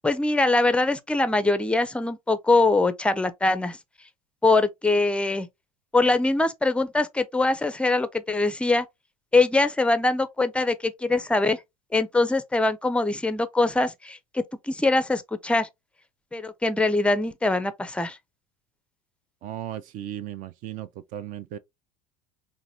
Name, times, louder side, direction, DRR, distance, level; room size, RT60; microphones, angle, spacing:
voice 1, 0.0-3.8 4.4-5.5 5.9-8.9 9.3-11.6 11.9-15.7 16.3-18.2, left 2 dB, 5° left, 0.5 m, -23 dB
voice 2, 19.4-21.6, right 11 dB, 45° right, 0.5 m, -36 dB
3.9 x 2.6 x 2.7 m
hypercardioid pair, 75°, 19 cm